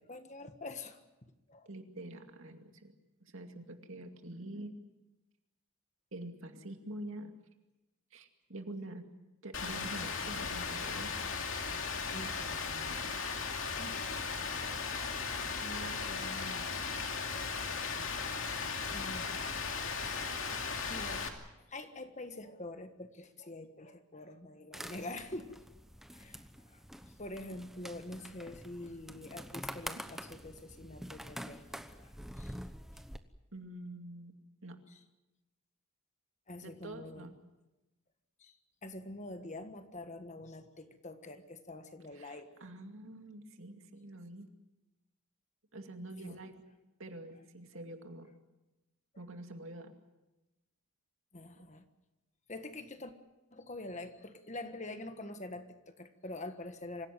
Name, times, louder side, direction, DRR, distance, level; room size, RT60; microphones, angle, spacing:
voice 1, 0.0-1.7 12.1-13.0 13.7-14.0 15.6-17.6 18.7-19.7 20.9-21.3 21.7-25.6 26.1-32.5 36.5-37.3 38.4-42.5 46.2-46.4 51.3-51.8 52.5-53.1 53.5-57.1, left 2 dB, 30° left, 8 dB, 1.5 m, -46 dB
voice 2, 1.7-2.9 3.2-4.7 6.1-7.3 8.1-9.0 9.4-11.1 33.5-34.3 34.6-34.8 36.6-37.3 42.1-44.5 45.7-46.7 47.0-48.3 49.2-50.0, right 1 dB, 65° right, 5 dB, 2.4 m, -46 dB
Rain, 9.5-21.3, left 5 dB, 60° left, 2.7 m, -37 dB
sound 1, 24.7-33.2, equal, ahead, 0.9 m, -47 dB
25.5 x 16.5 x 9.2 m, 1.0 s
head